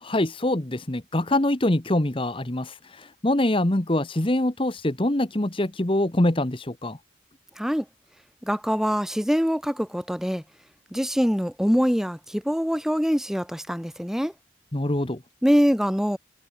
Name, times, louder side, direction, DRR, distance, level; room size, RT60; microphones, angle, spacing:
voice 1, 0.0-7.0 14.7-15.2, left 1 dB, 25° left, 1.1 m, -24 dB
voice 2, 8.4-10.4 10.9-14.3 15.4-16.2, equal, ahead, 2.8 m, -24 dB
head